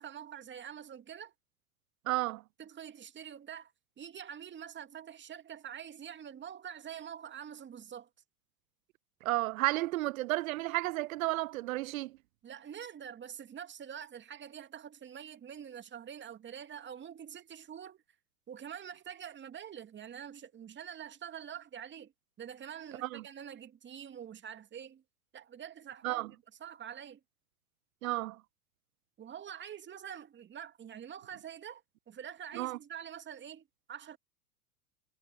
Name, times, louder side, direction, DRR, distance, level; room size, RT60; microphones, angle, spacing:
voice 1, 0.0-1.3 2.6-3.7 4.0-8.1 12.4-18.0 18.5-22.1 22.4-25.0 25.3-27.2 29.2-34.2, right 9 dB, 25° right, 2.5 m, -46 dB
voice 2, 2.1-2.4 9.2-12.2 23.0-23.2 26.0-26.3 28.0-28.4 32.5-32.8, right 18 dB, 65° right, 0.5 m, -32 dB
figure-of-eight pair, 90°, 46 cm